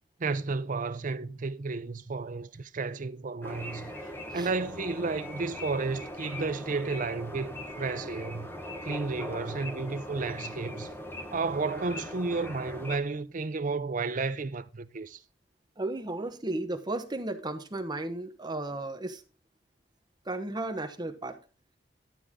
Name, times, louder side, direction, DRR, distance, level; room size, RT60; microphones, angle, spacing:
voice 1, 0.2-3.9 4.3-8.5 8.8-10.9 11.3-15.2, right 4 dB, 45° right, 0.6 m, -32 dB
sound 1, 3.4-13.0, left 1 dB, 15° left, 1.4 m, -40 dB
voice 2, 15.8-19.2 20.2-21.4, right 2 dB, 25° right, 1.1 m, -34 dB
12.0 x 7.9 x 3.7 m
head